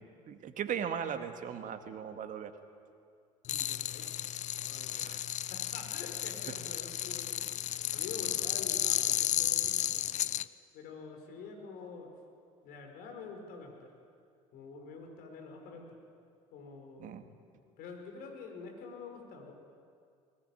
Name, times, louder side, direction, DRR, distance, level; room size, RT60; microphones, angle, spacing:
voice 1, 0.0-2.5 5.0-5.2 17.0-17.2, right 8 dB, 50° right, 7 dB, 2.0 m, -38 dB
voice 2, 3.5-5.1 5.5-7.6 7.9-10.0 10.7-12.1 12.6-13.9 14.5-16.0 16.5-17.2 17.8-19.5, left 4 dB, 60° left, 3 dB, 5.0 m, -47 dB
sound 1, 3.5-10.4, left 12 dB, 45° left, 0.6 m, -33 dB
21.0 x 18.5 x 9.3 m, 2.3 s
hypercardioid pair, 65°, 17 cm